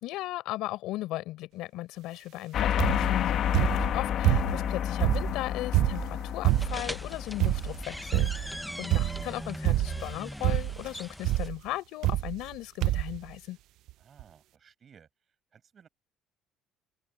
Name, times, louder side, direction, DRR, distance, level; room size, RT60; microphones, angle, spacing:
voice 1, 0.0-13.6, left 17 dB, 75° left, 4.3 m, -37 dB
sound 1, 2.5-8.3, left 10 dB, 50° left, 1.3 m, -30 dB
sound 2, 2.8-3.2 3.5-4.7 5.0-6.9 7.4-7.8 8.1-8.5 8.9-9.3 9.6-10.1 10.4-10.9 11.2-11.5 12.0-12.5 12.8-13.2 13.9-14.0 14.2-14.3, right 17 dB, 70° right, 0.6 m, -27 dB
sound 3, 6.5-11.5, equal, ahead, 0.8 m, -40 dB
voice 2, 14.0-15.1 15.5-15.9, right 7 dB, 35° right, 6.4 m, -57 dB
open air
cardioid pair, 140°, 0 cm